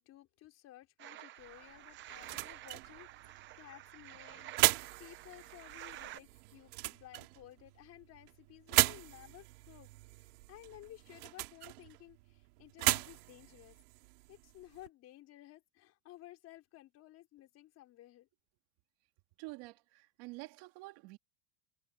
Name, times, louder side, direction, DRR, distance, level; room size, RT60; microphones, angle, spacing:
voice 1, 0.0-9.9 10.2-13.8 14.3-18.3, left 15 dB, 35° left, 4.3 m, -56 dB
sound 1, 1.0-6.2, right 13 dB, 25° right, 0.8 m, -50 dB
sound 2, 1.4-14.9, right 22 dB, 75° right, 3.0 m, -37 dB
voice 2, 19.4-21.2, right 23 dB, 50° right, 2.6 m, -48 dB
supercardioid pair, 170°, 46 cm